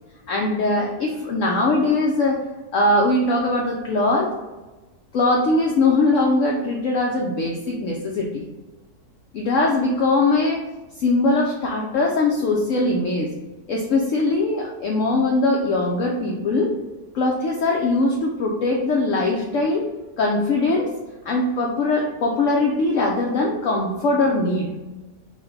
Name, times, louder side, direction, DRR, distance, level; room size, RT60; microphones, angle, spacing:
voice 1, 0.3-2.4 2.7-4.3 5.1-8.4 9.3-10.6 11.0-13.3 13.7-16.7 17.1-19.8 20.2-20.9 21.2-24.7, left 2 dB, 65° left, -1 dB, 0.9 m, -21 dB
5.8 x 2.2 x 4.0 m, 1.2 s
omnidirectional pair, 1.7 m